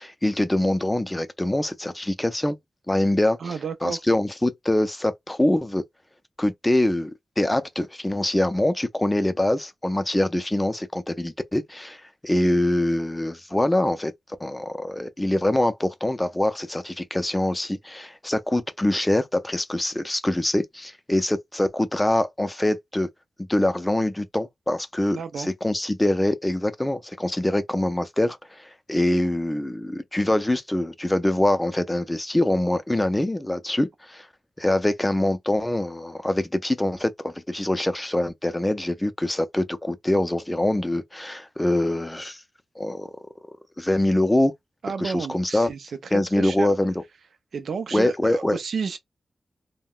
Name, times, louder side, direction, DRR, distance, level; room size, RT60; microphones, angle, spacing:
voice 1, 0.0-2.6 2.9-3.5 3.8-5.8 6.4-14.1 14.4-23.1 23.5-34.3 34.6-42.4 42.8-43.1 43.8-44.5 45.0-45.7 46.1-46.9 47.9-48.6, left 1 dB, 10° left, 0.4 m, -24 dB
voice 2, 3.4-4.0 25.1-25.5 44.8-46.7 47.5-49.0, right 5 dB, 85° right, 0.4 m, -31 dB
2.3 x 2.1 x 3.6 m
wide cardioid pair, 135°, 0 cm